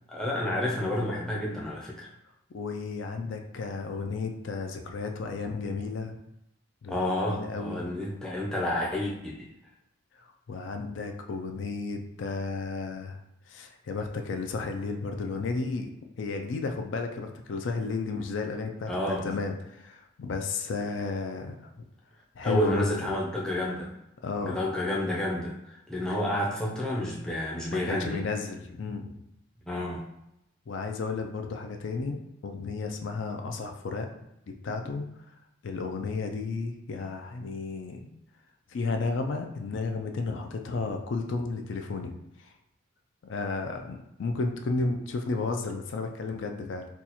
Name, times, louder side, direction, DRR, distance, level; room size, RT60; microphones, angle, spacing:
voice 1, 0.1-2.1 6.9-9.5 18.9-19.4 22.4-23.9 24.4-28.2 29.7-30.1, left 1 dB, 5° left, -4 dB, 0.5 m, -30 dB
voice 2, 2.5-6.2 6.8-7.8 10.5-13.2 13.5-15.9 16.2-21.7 22.4-23.1 24.2-24.6 27.7-29.1 30.7-34.1 34.6-35.1 35.6-38.1 38.7-42.5 43.2-46.9, left 4 dB, 65° left, 4 dB, 0.4 m, -33 dB
2.8 x 2.3 x 4.1 m, 0.84 s
head